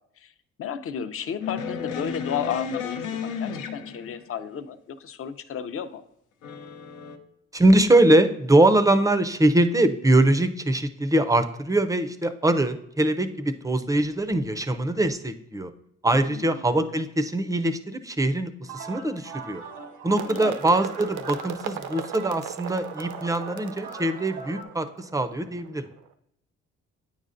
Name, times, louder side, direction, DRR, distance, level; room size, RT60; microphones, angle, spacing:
voice 1, 0.6-6.0 16.3-16.6 20.2-20.5, left 8 dB, 50° left, 11 dB, 0.5 m, -33 dB
sound 1, 1.4-4.4 6.4-7.2, left 6 dB, 90° left, 0.7 m, -33 dB
voice 2, 7.5-15.7 16.0-19.6 20.0-25.9, right 1 dB, 10° right, 10 dB, 0.4 m, -22 dB
sound 2, 18.6-24.6, right 4 dB, 90° right, 1.2 m, -41 dB
sound 3, 20.2-26.1, right 8 dB, 70° right, 0.5 m, -38 dB
8.9 x 5.3 x 2.5 m, 0.76 s
cardioid pair, 90°, 30 cm